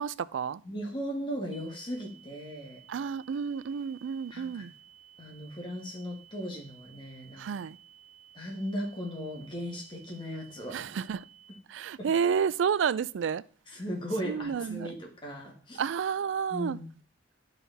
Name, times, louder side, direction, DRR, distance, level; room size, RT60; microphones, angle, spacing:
voice 1, 0.0-0.6 2.9-4.7 7.4-7.8 10.7-11.2 11.7-13.4 14.3-14.9 15.8-16.8, right 7 dB, 85° right, 0.3 m, -30 dB
voice 2, 0.6-2.8 4.3-4.7 5.2-7.5 8.3-10.9 12.0-12.1 13.7-15.8 16.5-16.9, equal, 25° left, 1.9 m, -37 dB
sound 1, 1.5-11.5, right 10 dB, ahead, 0.5 m, -56 dB
12.0 x 4.0 x 4.0 m
head